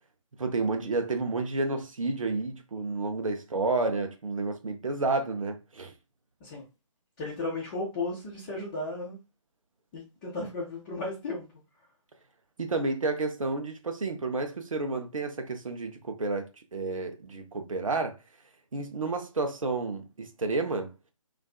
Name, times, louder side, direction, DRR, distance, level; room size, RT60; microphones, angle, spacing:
voice 1, 0.4-5.9 12.6-18.2 18.7-20.9, right 3 dB, 75° right, 0.6 m, -30 dB
voice 2, 7.2-9.2 9.9-11.5, left 2 dB, 20° left, 0.6 m, -34 dB
2.5 x 2.3 x 2.3 m
figure-of-eight pair, 140°, 17 cm